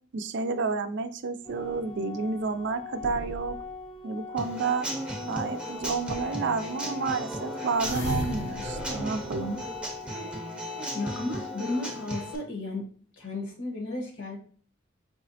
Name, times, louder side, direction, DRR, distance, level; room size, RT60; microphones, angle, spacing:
voice 1, 0.1-3.6 4.0-4.9 5.3-9.6, right 4 dB, 60° right, 10 dB, 0.4 m, -30 dB
sound 1, 1.4-3.9 5.8-6.5 7.8-10.2, equal, 65° left, 0.7 m, -38 dB
Organ, 1.4-12.4, left 5 dB, 20° left, 0.5 m, -43 dB
Human voice / Acoustic guitar / Drum, 4.4-12.4, equal, 5° right, 0.8 m, -36 dB
voice 2, 10.9-12.8 13.2-14.4, left 2 dB, 80° left, 1 dB, 1.3 m, -34 dB
4.6 x 3.0 x 2.7 m, 0.43 s
head